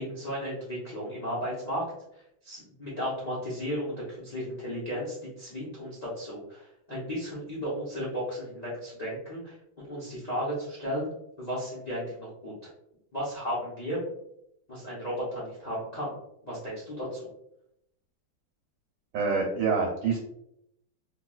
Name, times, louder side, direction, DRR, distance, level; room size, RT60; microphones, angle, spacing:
voice 1, 0.0-1.8 2.4-11.1 11.4-12.5 13.1-14.0 14.7-16.1 16.4-17.3, equal, 65° left, -7 dB, 0.4 m, -34 dB
voice 2, 19.1-20.2, right 5 dB, 75° right, -1 dB, 1.3 m, -26 dB
3.0 x 2.8 x 2.3 m, 0.79 s
omnidirectional pair, 2.1 m